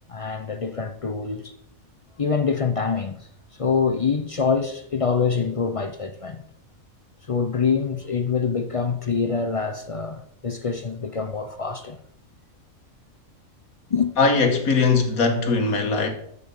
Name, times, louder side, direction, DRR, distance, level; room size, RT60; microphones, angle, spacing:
voice 1, 0.1-1.6 2.2-3.2 3.6-6.4 7.2-12.0 13.9-14.1, left 5 dB, 55° left, 0.3 m, -25 dB
voice 2, 14.2-16.1, left 4 dB, 80° left, 1.8 m, -20 dB
8.4 x 6.9 x 5.5 m
omnidirectional pair, 1.5 m